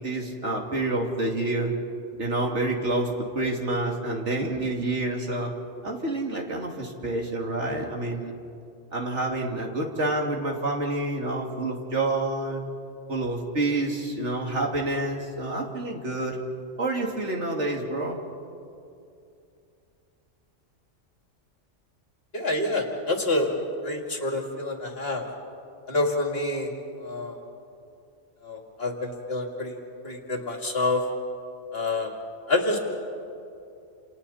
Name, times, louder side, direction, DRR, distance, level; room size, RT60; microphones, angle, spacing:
voice 1, 0.0-1.7 2.2-5.5 5.8-8.3 8.9-12.6 13.1-16.4 16.8-18.2, right 2 dB, 70° right, 0 dB, 2.9 m, -28 dB
voice 2, 22.3-23.5 23.8-25.3 25.9-26.7 27.0-27.4 28.4-29.8 30.0-31.0 31.7-32.1 32.5-32.8, left 2 dB, 55° left, 1 dB, 2.8 m, -27 dB
29.5 x 28.5 x 4.3 m, 2.6 s
omnidirectional pair, 1.3 m